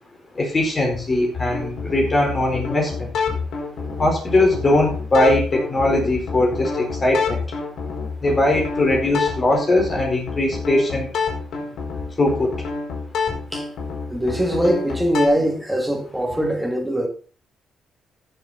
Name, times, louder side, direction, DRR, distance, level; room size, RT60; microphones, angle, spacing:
voice 1, 0.3-3.1 4.0-7.4 8.2-11.1 12.2-12.5, left 1 dB, 30° left, 4.4 m, -20 dB
sound 1, 1.3-15.3, left 5 dB, 70° left, 4.9 m, -28 dB
voice 2, 14.1-17.1, equal, 5° right, 3.1 m, -22 dB
14.0 x 7.4 x 4.2 m
cardioid pair, 90°, 0 cm